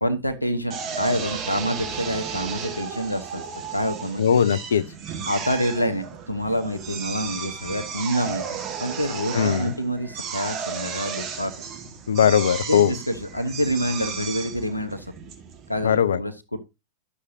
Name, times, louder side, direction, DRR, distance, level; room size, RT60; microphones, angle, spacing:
voice 1, 0.0-3.4 3.7-4.4 5.3-8.4 8.8-11.5 12.7-15.1 15.7-16.6, equal, 85° left, 1.0 m, -27 dB
Drill, 0.7-16.0, right 6 dB, 35° right, 1.6 m, -34 dB
voice 2, 4.2-4.8 9.3-9.7 12.1-12.9 15.8-16.2, left 8 dB, 65° left, 0.5 m, -19 dB
11.0 x 6.3 x 2.7 m
figure-of-eight pair, 90°, 0 cm